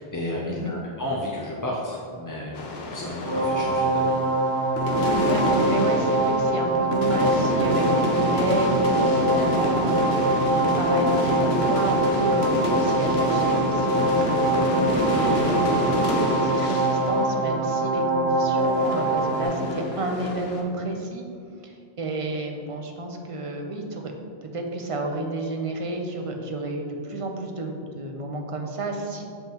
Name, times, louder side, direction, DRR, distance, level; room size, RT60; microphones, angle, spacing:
voice 1, 0.0-2.7 2.9-4.2 14.7-14.8, left 1 dB, 25° left, -4 dB, 0.4 m, -32 dB
sound 1, 2.5-4.4 4.8-18.2 18.6-20.6, left 1 dB, 80° left, 1.0 m, -28 dB
sound 2, 3.3-19.5, right 2 dB, 60° right, 1.0 m, -23 dB
voice 2, 5.1-21.2 21.6-24.1 24.5-29.2, right 2 dB, 40° right, 2 dB, 0.6 m, -31 dB
7.0 x 5.4 x 3.0 m, 2.3 s
omnidirectional pair, 1.0 m